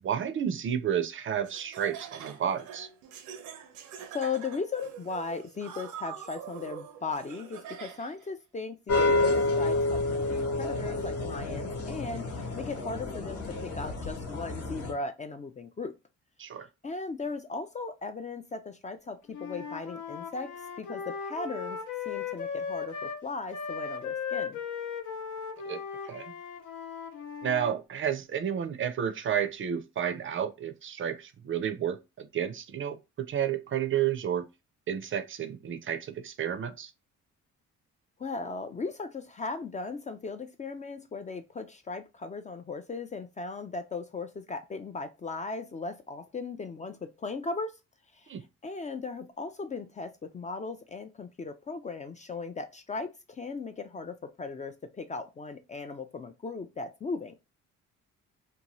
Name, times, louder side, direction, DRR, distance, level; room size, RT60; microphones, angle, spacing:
voice 1, 0.0-2.9 16.4-16.7 25.7-26.3 27.4-34.5 34.9-36.9 48.3-48.4, right 9 dB, 45° right, 0.4 m, -31 dB
Laughter, 1.4-8.3, right 9 dB, 85° right, 0.7 m, -44 dB
voice 2, 4.1-15.9 16.8-20.5 20.8-21.8 22.1-24.6 38.2-47.7 48.2-48.3 48.6-57.3, left 4 dB, 25° left, 0.3 m, -37 dB
sound 1, 8.9-14.9, left 2 dB, 50° left, 0.9 m, -29 dB
Wind instrument woodwind instrument, 19.3-23.2 23.5-27.8, left 6 dB, 75° left, 0.7 m, -37 dB
2.7 x 2.2 x 2.9 m
cardioid pair, 90°, 30 cm